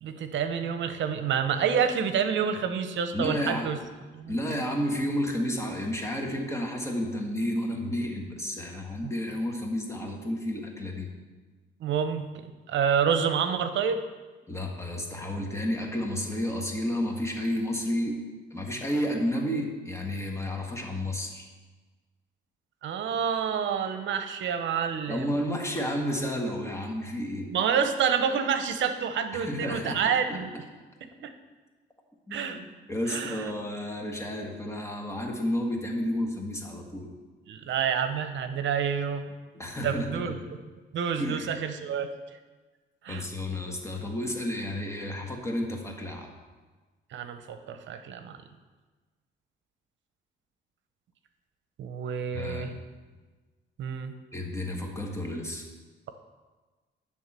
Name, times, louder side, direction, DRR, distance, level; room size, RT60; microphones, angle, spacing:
voice 1, 0.0-3.8 4.1-4.3 9.0-9.1 11.8-14.0 22.8-25.2 27.5-30.5 31.2-31.3 32.3-32.6 33.1-33.5 37.5-39.2 39.8-40.4 40.9-42.1 43.0-43.3 47.1-48.4 51.8-52.7 53.8-54.1, right 7 dB, 70° right, 9 dB, 0.8 m, -28 dB
voice 2, 3.1-3.7 4.3-11.1 14.5-18.2 18.5-21.5 25.1-27.5 29.3-30.4 32.3-32.6 32.9-37.1 39.5-40.3 41.2-41.5 43.1-46.3 52.3-52.8 54.3-55.7, left 1 dB, 15° left, 1 dB, 1.7 m, -31 dB
11.0 x 3.7 x 7.4 m, 1.3 s
cardioid pair, 90°, 20 cm